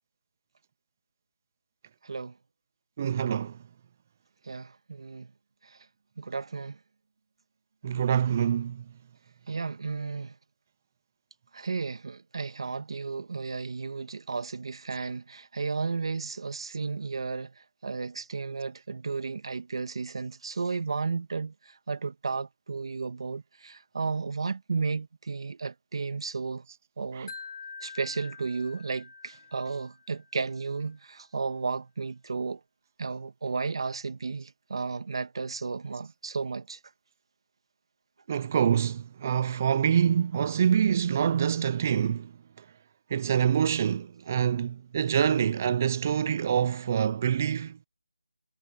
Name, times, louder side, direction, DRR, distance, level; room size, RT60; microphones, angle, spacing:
voice 1, 2.0-2.3 4.5-5.3 6.2-6.8 9.5-10.3 11.5-17.5 17.8-26.6 27.0-27.3 27.8-32.6 33.0-36.8, right 4 dB, 45° right, 2.1 m, -33 dB
voice 2, 3.0-3.6 7.8-8.8 27.1-27.3 38.3-42.3 42.6-42.7 43.1-47.8, right 8 dB, 20° right, 0.6 m, -26 dB
Wind chime, 27.3-30.4, left 5 dB, 40° left, 6.8 m, -46 dB
figure-of-eight pair, 170°, 4 cm